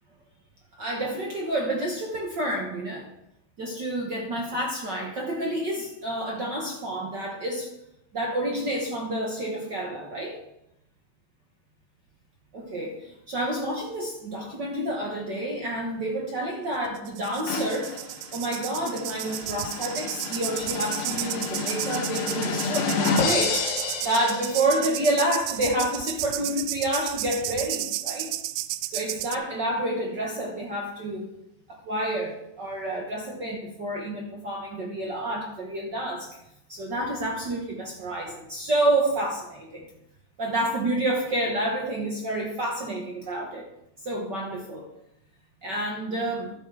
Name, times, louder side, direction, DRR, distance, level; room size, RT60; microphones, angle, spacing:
voice 1, 0.8-3.1 3.6-7.7 8.1-10.4 12.5-18.0 18.3-28.3 28.9-31.3 31.7-36.4 36.7-39.9 40.4-43.7 44.0-44.9 45.6-46.5, right 1 dB, 55° right, -1 dB, 1.2 m, -29 dB
sound 1, 17.0-29.4, right 15 dB, 90° right, 2.3 m, -33 dB
sound 2, 17.5-25.0, left 5 dB, 80° left, 2.9 m, -30 dB
11.5 x 8.0 x 4.9 m, 0.82 s
omnidirectional pair, 4.0 m